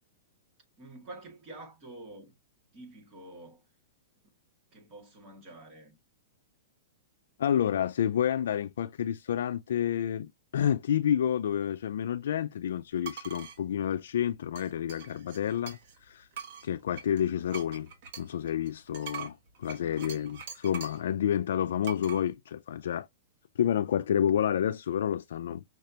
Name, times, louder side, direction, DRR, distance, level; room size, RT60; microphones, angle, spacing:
voice 1, 0.8-2.4 2.7-3.6 4.7-6.0 19.8-20.2, right 2 dB, 25° right, 2.0 m, -48 dB
voice 2, 7.4-16.3 16.6-17.9 18.2-23.1 23.6-25.6, left 9 dB, 75° left, 0.3 m, -29 dB
sound 1, 13.0-13.6 14.6-16.0 16.3-21.1 21.8-22.2, right 7 dB, 50° right, 1.4 m, -43 dB
5.8 x 3.2 x 2.8 m
hypercardioid pair, 165°, 0 cm